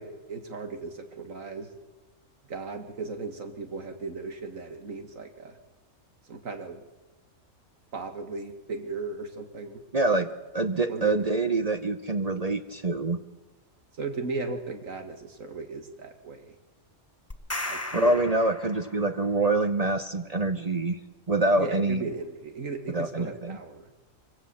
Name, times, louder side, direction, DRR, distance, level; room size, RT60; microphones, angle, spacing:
voice 1, 0.0-1.7 2.5-5.6 6.2-6.8 7.9-9.8 10.9-11.3 14.0-16.6 17.6-18.2 21.6-23.9, right 4 dB, 90° right, 6 dB, 2.4 m, -36 dB
voice 2, 9.9-10.3 10.5-13.2 17.9-21.0 21.3-22.0 22.9-23.6, right 2 dB, 35° right, 8 dB, 0.9 m, -25 dB
sound 1, 17.3-19.3, left 1 dB, 15° left, 0.9 m, -36 dB
24.0 x 16.5 x 7.2 m, 1.2 s
omnidirectional pair, 1.3 m